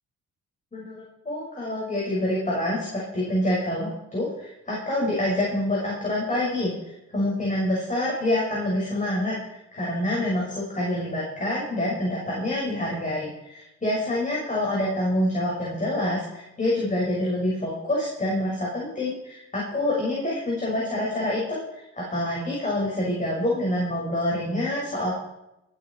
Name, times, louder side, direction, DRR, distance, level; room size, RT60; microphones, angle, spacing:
voice 1, 0.7-25.1, left 1 dB, 25° left, -4 dB, 6.6 m, -27 dB
24.0 x 9.3 x 4.8 m, 0.89 s
cardioid pair, 90°, 30 cm